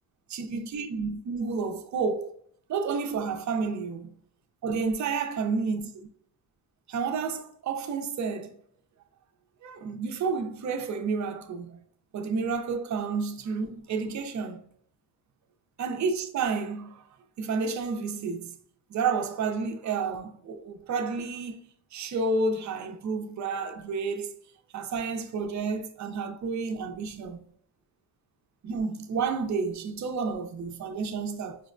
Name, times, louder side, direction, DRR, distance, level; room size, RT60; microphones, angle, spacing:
voice 1, 0.3-2.3 2.7-4.1 4.6-6.1 6.9-8.6 9.6-11.8 12.1-14.6 15.8-17.1 17.4-18.5 18.9-24.4 24.7-27.4 28.6-31.6, right 4 dB, 40° right, 0.4 m, -30 dB
5.0 x 2.1 x 2.4 m
cardioid pair, 105°, 49 cm